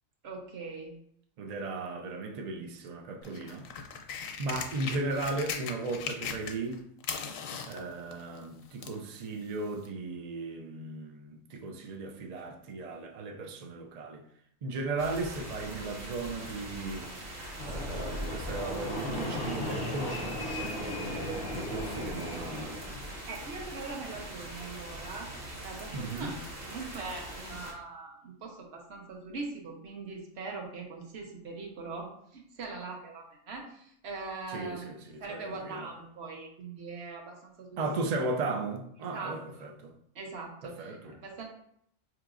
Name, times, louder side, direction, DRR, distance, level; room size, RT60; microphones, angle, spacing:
voice 1, 0.2-1.0 23.3-25.3 25.6-26.4 26.6-34.9 35.2-37.8 39.1-39.7 40.1-41.4, right 3 dB, 60° right, 1.0 m, -41 dB
voice 2, 1.4-3.7 4.4-6.8 7.7-14.2 14.6-17.1 17.6-22.8 25.9-26.3 34.5-35.0 35.3-35.9 37.8-39.9 40.6-41.1, right 3 dB, 90° right, 0.3 m, -36 dB
sound 1, 3.2-6.8 7.0-9.0 9.9-10.0, left 6 dB, 85° left, 1.0 m, -38 dB
sound 2, 15.0-27.7, right 1 dB, 40° right, 0.8 m, -43 dB
Fixed-wing aircraft airplane, 17.5-23.2, left 1 dB, 30° left, 0.4 m, -36 dB
4.6 x 2.9 x 2.4 m
omnidirectional pair, 1.3 m